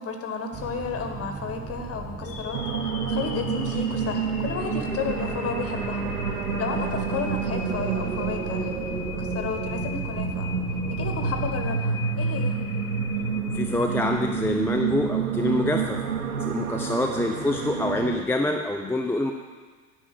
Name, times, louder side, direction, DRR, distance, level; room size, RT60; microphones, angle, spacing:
voice 1, 0.0-6.1 6.6-8.7 9.1-10.5 10.9-12.6, left 5 dB, 35° left, 5 dB, 1.5 m, -33 dB
sound 1, 0.5-11.8, right 4 dB, 20° right, 1.1 m, -39 dB
sound 2, 2.2-14.3, left 7 dB, 60° left, 1.1 m, -40 dB
sound 3, 2.5-18.2, right 6 dB, 90° right, 0.7 m, -29 dB
voice 2, 13.5-16.0 16.3-19.3, left 2 dB, 5° left, 3 dB, 0.6 m, -26 dB
9.6 x 5.4 x 7.9 m, 1.5 s
figure-of-eight pair, 70°, 43 cm